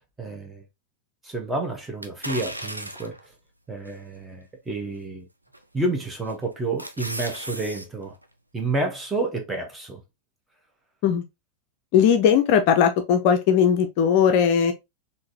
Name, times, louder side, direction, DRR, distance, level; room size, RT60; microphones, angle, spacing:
voice 1, 0.2-0.6 1.2-3.1 3.7-5.3 5.7-8.1 8.5-10.0, right 2 dB, 10° right, 1.0 m, -29 dB
sound 1, 2.0-3.3 3.9-4.0 5.5-5.9 6.3-7.9 8.2-8.3, right 1 dB, 85° right, 0.4 m, -35 dB
voice 2, 11.9-14.7, left 8 dB, 45° left, 0.5 m, -19 dB
3.7 x 2.6 x 2.7 m
figure-of-eight pair, 90°, 0 cm